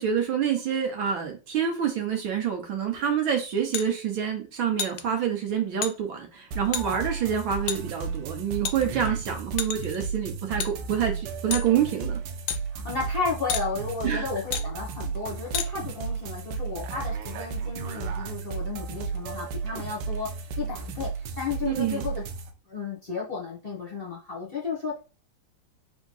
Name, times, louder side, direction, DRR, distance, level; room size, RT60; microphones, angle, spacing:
voice 1, 0.0-12.2 14.0-14.3 21.6-22.1, right 8 dB, 70° right, 3 dB, 1.6 m, -27 dB
sound 1, 3.7-3.9 4.8-5.0 5.8-5.9 6.7-6.9 7.7-7.8 8.6-9.1 9.6-10.0 10.6-10.7 11.5-11.7 12.5-12.6 13.5-13.7 14.5-14.7 15.5-15.7, left 8 dB, 75° left, 1.3 m, -29 dB
sound 2, 6.5-22.5, right 5 dB, 90° right, 1.6 m, -34 dB
voice 2, 12.7-20.3 20.6-22.2 22.7-25.0, left 4 dB, 30° left, -4 dB, 1.4 m, -33 dB
3.6 x 3.6 x 3.9 m, 0.31 s
omnidirectional pair, 2.4 m